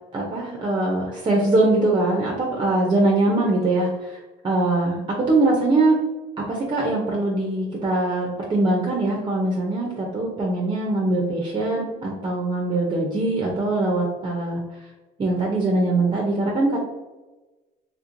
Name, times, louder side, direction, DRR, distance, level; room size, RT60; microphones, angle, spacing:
voice 1, 0.1-6.0 6.4-14.6 15.2-16.8, right 2 dB, 30° right, -2 dB, 0.6 m, -22 dB
3.0 x 3.0 x 2.5 m, 1.2 s
cardioid pair, 110°, 17 cm